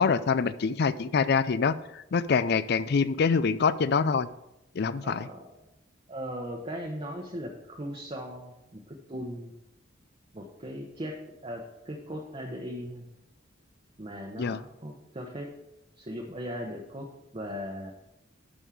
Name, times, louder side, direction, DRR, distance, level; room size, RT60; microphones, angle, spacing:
voice 1, 0.0-4.3 4.8-5.3 14.4-14.6, left 5 dB, 55° left, 16 dB, 0.4 m, -25 dB
voice 2, 5.0-5.6 6.1-9.5 10.3-13.1 14.0-15.5 16.0-17.9, equal, 30° right, 0 dB, 0.9 m, -38 dB
11.5 x 5.4 x 4.8 m, 0.88 s
head